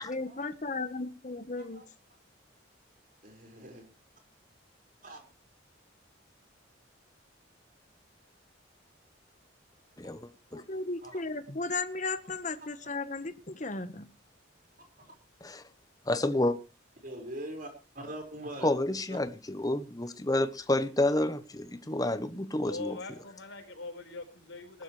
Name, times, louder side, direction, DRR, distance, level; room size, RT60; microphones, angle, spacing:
voice 1, 0.0-1.8 10.5-14.0, left 3 dB, 40° left, 1.2 m, -35 dB
voice 2, 3.2-3.9 5.0-5.3 11.0-11.2 15.0-15.1 17.0-18.7, right 1 dB, 45° right, 5.0 m, -42 dB
voice 3, 10.0-10.6 15.4-15.6 16.1-16.6 18.6-23.0, left 1 dB, 20° left, 0.9 m, -29 dB
voice 4, 22.6-24.8, left 3 dB, 75° left, 4.7 m, -42 dB
19.5 x 12.5 x 3.2 m
head